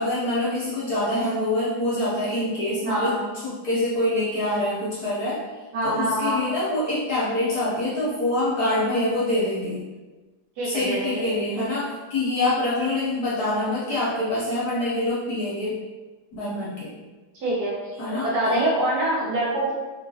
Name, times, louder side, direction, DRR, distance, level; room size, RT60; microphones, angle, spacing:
voice 1, 0.0-3.2 3.4-5.4 5.8-9.8 10.6-15.8 16.3-17.0 18.0-18.6, left 1 dB, 65° left, -7 dB, 1.0 m, -25 dB
voice 2, 2.8-3.2 5.7-6.4 10.6-11.2 17.4-17.8 18.2-19.7, right 1 dB, 65° right, -6 dB, 1.1 m, -24 dB
2.9 x 2.9 x 2.7 m, 1.2 s
omnidirectional pair, 2.2 m